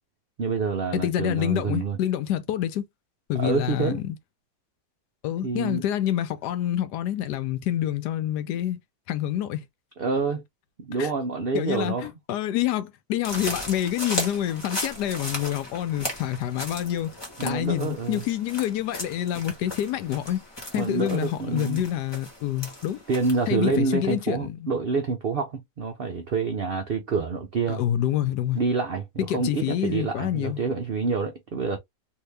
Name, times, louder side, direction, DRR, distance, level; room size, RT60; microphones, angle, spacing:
voice 1, 0.4-2.0 3.4-4.0 5.4-5.8 10.0-10.4 10.8-12.1 17.4-18.2 20.8-21.8 23.1-27.8 28.6-31.8, right 4 dB, 70° right, 0.5 m, -27 dB
voice 2, 0.9-2.9 3.3-4.2 5.2-8.8 9.1-9.6 11.0-11.1 11.5-17.1 17.4-20.4 20.7-23.0 23.5-24.7 27.7-28.6 29.2-30.6, left 11 dB, 85° left, 1.2 m, -27 dB
sound 1, 13.2-23.5, left 1 dB, 15° left, 1.1 m, -36 dB
2.8 x 2.8 x 3.2 m
omnidirectional pair, 1.7 m